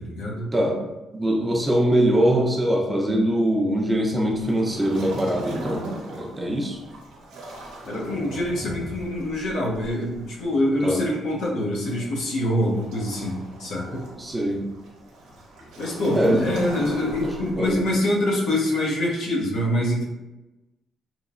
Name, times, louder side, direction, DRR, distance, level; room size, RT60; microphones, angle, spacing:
voice 1, 0.0-0.5 7.8-14.1 15.8-20.0, left 1 dB, 80° left, -3 dB, 0.7 m, -25 dB
voice 2, 0.5-5.9 6.1-6.8 10.8-11.0 14.2-14.6 16.1-16.5 17.2-17.8, right 1 dB, 15° right, 0 dB, 0.5 m, -23 dB
Waves surf, 4.3-18.0, right 1 dB, 90° right, 0.6 m, -38 dB
2.9 x 2.0 x 2.4 m, 1.0 s
cardioid pair, 90°, 0 cm